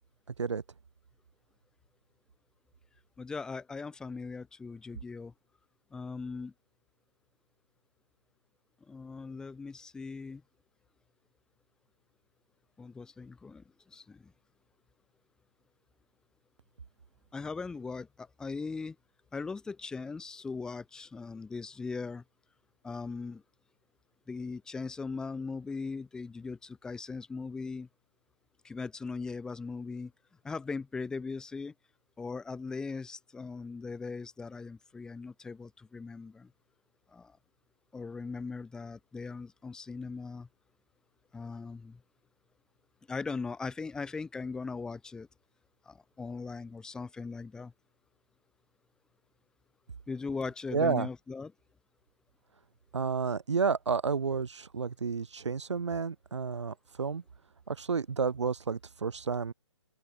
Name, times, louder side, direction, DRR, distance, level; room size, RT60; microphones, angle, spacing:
voice 1, 3.2-5.3 5.9-6.5 8.9-10.4 12.8-14.3 17.3-19.0 19.3-22.2 22.8-23.4 24.3-27.9 28.6-30.1 30.4-31.7 32.2-36.5 37.1-37.4 37.9-40.5 41.3-42.0 43.1-45.3 45.8-47.7 50.1-51.5, left 4 dB, 5° left, 1.1 m, -39 dB
voice 2, 50.7-51.1 52.9-57.2 57.7-59.5, right 5 dB, 65° right, 1.2 m, -31 dB
open air
figure-of-eight pair, 145°, 16 cm